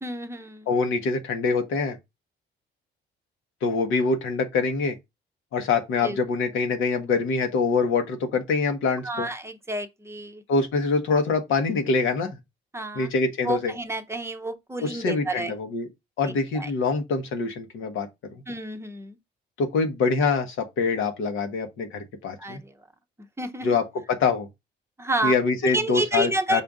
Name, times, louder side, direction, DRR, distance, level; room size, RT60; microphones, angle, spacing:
voice 1, 0.0-0.7 6.0-6.2 9.0-10.4 12.7-13.1 13.4-15.5 16.2-16.7 18.5-19.2 22.4-22.7 23.4-23.7 25.0-25.3 25.6-26.6, right 2 dB, 15° right, 0.7 m, -30 dB
voice 2, 0.7-2.0 3.6-5.0 5.5-9.3 10.5-12.3 12.9-13.7 14.8-15.9 16.2-18.1 19.6-22.6 23.6-24.5 25.2-26.6, left 4 dB, 80° left, 1.1 m, -24 dB
5.5 x 2.6 x 3.6 m
cardioid pair, 90°, 20 cm